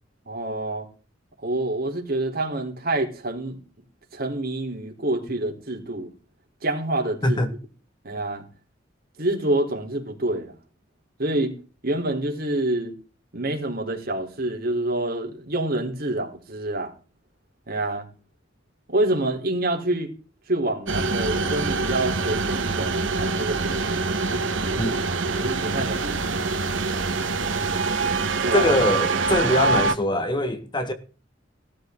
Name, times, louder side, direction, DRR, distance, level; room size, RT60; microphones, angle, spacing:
voice 1, 0.3-0.9 1.4-3.6 4.1-6.1 6.6-7.4 8.0-8.4 9.2-10.6 11.2-11.6 11.8-12.9 13.3-16.9 17.7-18.1 18.9-20.1 20.5-25.0 25.3-26.4 28.4-28.7, right 1 dB, 50° right, 4.0 m, -27 dB
sound 1, 20.9-29.9, right 3 dB, 85° right, 1.6 m, -25 dB
voice 2, 28.5-30.9, left 1 dB, 25° left, 1.7 m, -23 dB
17.0 x 13.0 x 3.9 m
head